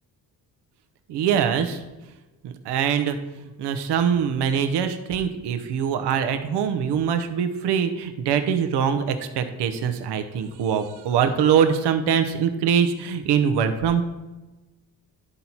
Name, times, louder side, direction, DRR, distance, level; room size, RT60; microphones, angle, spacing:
voice 1, 1.1-1.8 2.4-14.0, right 7 dB, 85° right, 9 dB, 0.8 m, -23 dB
11.0 x 4.1 x 4.4 m, 1.1 s
cardioid pair, 90°, 40 cm